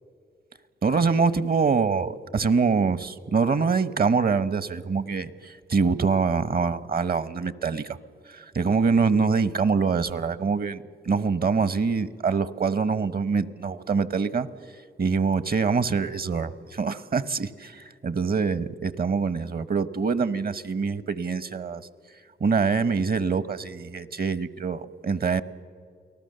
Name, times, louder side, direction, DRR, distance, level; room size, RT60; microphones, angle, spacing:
voice 1, 0.8-8.0 8.3-14.5 15.0-21.8 22.4-25.4, right 5 dB, 50° right, 15 dB, 1.1 m, -25 dB
29.0 x 19.0 x 6.8 m, 2.1 s
cardioid pair, 55°, 20 cm